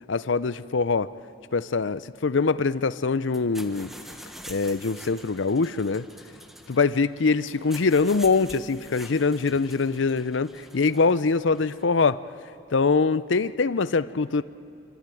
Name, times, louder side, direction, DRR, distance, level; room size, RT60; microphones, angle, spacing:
voice 1, 0.1-1.1 1.5-3.9 4.5-6.1 6.7-12.2 12.7-14.4, left 4 dB, 75° left, 16 dB, 0.6 m, -23 dB
sound 1, 3.2-11.9, equal, ahead, 1.3 m, -46 dB
25.0 x 25.0 x 9.2 m, 2.7 s
head